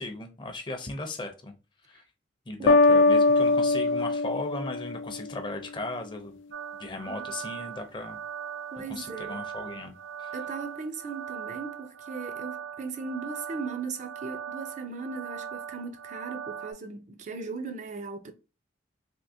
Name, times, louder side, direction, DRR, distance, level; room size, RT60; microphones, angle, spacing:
voice 1, 0.0-1.5 1.8-2.0 2.5-6.4 6.8-8.2 8.9-10.3, left 2 dB, 25° left, 0.5 m, -37 dB
sound 1, 2.7-5.5, left 3 dB, 85° left, 0.3 m, -22 dB
sound 2, 6.5-16.7, right 8 dB, 90° right, 0.7 m, -40 dB
voice 2, 8.7-9.4 10.3-18.3, right 4 dB, 40° right, 0.4 m, -38 dB
3.6 x 2.7 x 2.6 m
head